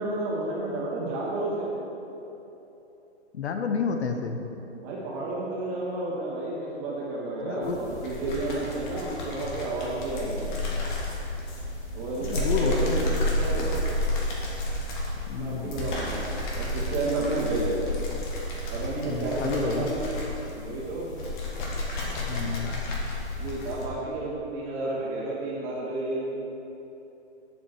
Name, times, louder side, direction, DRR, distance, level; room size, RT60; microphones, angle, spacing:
voice 1, 0.0-1.7 4.7-10.6 11.9-13.8 15.4-16.2 16.6-17.8 18.7-20.0 20.6-21.1 23.4-26.3, right 2 dB, 30° right, -5 dB, 2.0 m, -31 dB
voice 2, 3.3-4.4 7.4-7.8 12.2-13.1 15.3-15.9 19.0-19.9 22.3-22.8, left 5 dB, 70° left, 6 dB, 0.8 m, -30 dB
sound 1, 7.6-23.9, left 1 dB, 45° left, 1.9 m, -31 dB
7.5 x 7.1 x 4.6 m, 3.0 s
hypercardioid pair, 135°, 34 cm